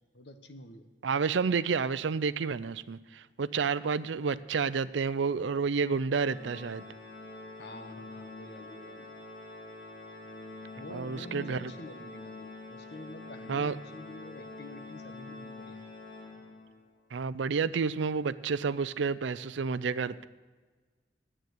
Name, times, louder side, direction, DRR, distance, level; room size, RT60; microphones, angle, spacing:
voice 1, 0.1-0.9 7.6-9.1 10.7-15.9, left 1 dB, 60° left, 8 dB, 1.1 m, -47 dB
voice 2, 1.0-6.9 10.9-11.7 13.5-13.8 17.1-20.3, right 5 dB, 80° right, 16 dB, 0.5 m, -30 dB
Organ, 6.2-16.9, left 2 dB, 85° left, 2.2 m, -46 dB
9.4 x 8.7 x 9.4 m, 1.4 s
head